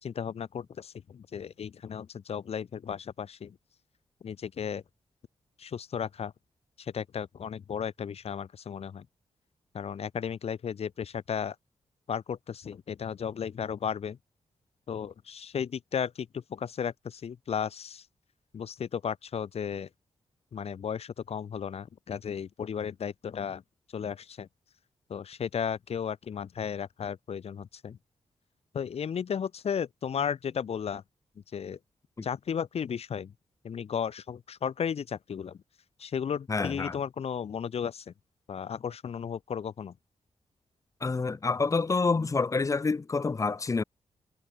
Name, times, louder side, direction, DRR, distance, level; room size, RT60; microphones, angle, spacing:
voice 1, 0.0-3.6 4.2-4.8 5.6-6.3 6.8-9.1 9.7-11.6 12.1-14.2 14.9-18.1 18.5-19.9 20.5-23.6 23.9-24.5 25.1-28.0 28.7-31.0 31.5-31.8 32.2-33.3 33.6-35.6 36.0-38.1 38.5-39.9, left 7 dB, 65° left, 3.7 m, -34 dB
voice 2, 36.5-37.0 41.0-43.8, left 4 dB, 30° left, 1.5 m, -27 dB
wide cardioid pair, 150°, 11 cm